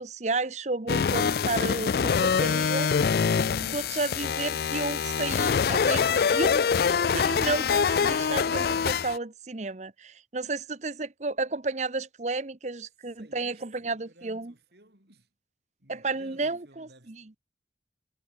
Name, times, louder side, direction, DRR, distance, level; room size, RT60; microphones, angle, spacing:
voice 1, 0.0-2.9 3.6-14.5 15.9-17.2, right 3 dB, 40° right, 0.9 m, -32 dB
sound 1, 0.9-9.2, left 6 dB, 55° left, 0.4 m, -25 dB
voice 2, 13.0-15.3 15.8-17.4, right 1 dB, 65° right, 8.0 m, -57 dB
head